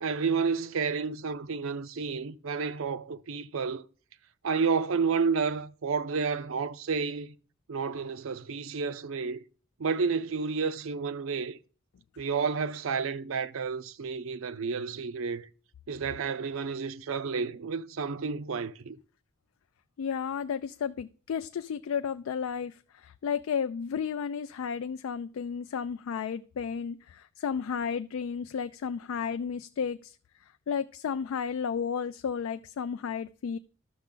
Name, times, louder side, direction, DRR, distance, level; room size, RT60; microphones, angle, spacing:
voice 1, 0.0-3.9 4.4-7.4 7.7-9.4 9.8-11.6 12.2-15.5 15.9-19.0, right 5 dB, 70° right, 0.5 m, -30 dB
voice 2, 20.0-22.7 23.0-30.1 30.7-33.6, left 7 dB, 75° left, 0.3 m, -33 dB
12.0 x 6.4 x 3.8 m
head